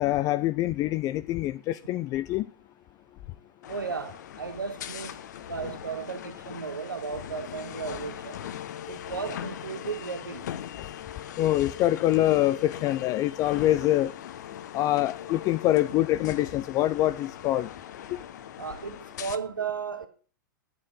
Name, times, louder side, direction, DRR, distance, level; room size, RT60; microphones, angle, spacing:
voice 1, 0.0-2.5 11.4-14.1 14.7-17.7, left 14 dB, 35° left, 0.4 m, -25 dB
sound 1, 3.6-19.4, left 10 dB, 60° left, 0.9 m, -40 dB
voice 2, 3.7-8.4 8.9-10.5 18.6-20.1, right 5 dB, 85° right, 1.6 m, -35 dB
8.9 x 7.6 x 7.4 m
figure-of-eight pair, 100°, 11 cm